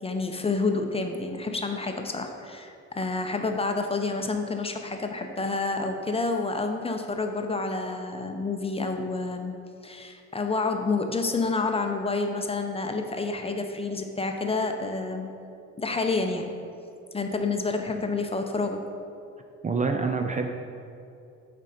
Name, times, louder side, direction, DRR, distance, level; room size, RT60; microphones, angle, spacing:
voice 1, 0.0-9.5 9.8-15.3 15.8-16.5 17.1-18.8, left 3 dB, 20° left, 4 dB, 0.6 m, -29 dB
voice 2, 19.6-20.5, right 4 dB, 25° right, 4 dB, 0.4 m, -26 dB
7.2 x 5.2 x 4.2 m, 2.6 s
cardioid pair, 90°, 30 cm